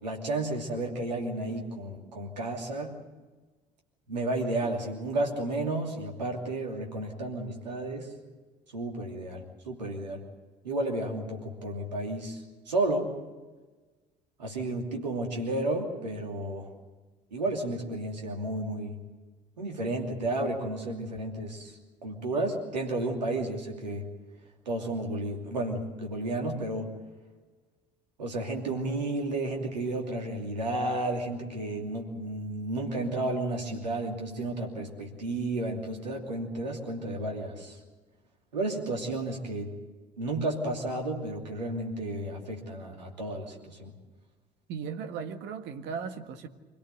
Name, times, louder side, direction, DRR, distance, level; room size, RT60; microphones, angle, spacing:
voice 1, 0.0-2.9 4.1-8.1 8.7-10.2 10.6-13.1 14.4-16.7 17.3-19.0 19.6-24.1 24.7-26.9 28.2-37.8 38.5-39.7 40.2-43.9, right 2 dB, 80° right, 2.9 m, -32 dB
voice 2, 44.7-46.5, right 6 dB, 55° right, 1.7 m, -37 dB
26.0 x 17.0 x 8.1 m
figure-of-eight pair, 55°, 21 cm